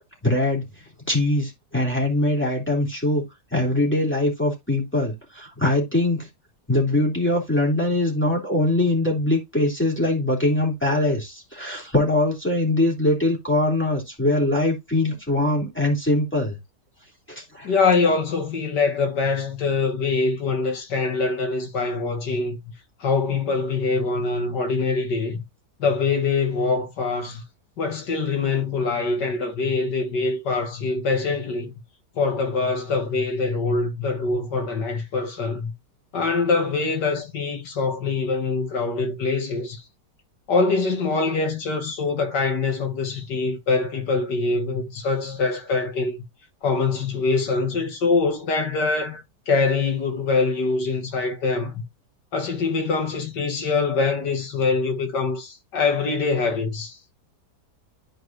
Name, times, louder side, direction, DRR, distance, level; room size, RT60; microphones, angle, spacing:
voice 1, 0.2-0.6 1.1-3.2 3.5-6.3 6.7-16.6 17.3-17.7, left 1 dB, 5° left, 2.9 m, -22 dB
voice 2, 17.6-22.6 23.0-25.4 25.8-27.4 27.8-31.7 32.2-35.7 36.1-39.8 40.5-46.2 46.6-51.8 52.3-57.0, left 4 dB, 80° left, 2.3 m, -24 dB
11.5 x 4.7 x 2.6 m
omnidirectional pair, 1.8 m